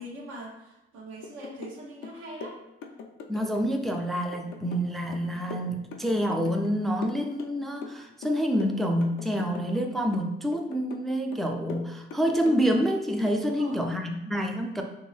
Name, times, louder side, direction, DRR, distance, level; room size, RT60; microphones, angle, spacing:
voice 1, 0.0-2.6 13.4-13.9, right 1 dB, 85° right, -2 dB, 0.9 m, -42 dB
sound 1, 1.2-1.8 2.0-3.6 3.9-6.7 7.0-9.8 10.1-11.1 11.3-12.9 13.3-13.4, left 5 dB, 85° left, 0.4 m, -42 dB
voice 2, 3.3-14.8, equal, ahead, 3 dB, 0.3 m, -27 dB
3.1 x 2.6 x 3.2 m, 0.89 s
cardioid pair, 90°, 20 cm